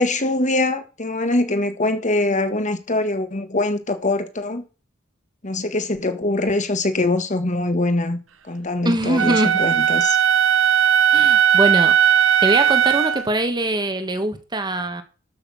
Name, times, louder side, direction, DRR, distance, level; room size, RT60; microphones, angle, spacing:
voice 1, 0.0-4.6 5.4-8.2 8.4-10.2, left 2 dB, 40° left, 1.7 m, -23 dB
voice 2, 8.8-9.6 11.1-11.9 12.4-15.0, right 1 dB, 20° right, 1.6 m, -22 dB
Wind instrument woodwind instrument, 9.2-13.2, right 9 dB, 70° right, 1.1 m, -17 dB
13.0 x 6.4 x 6.3 m
head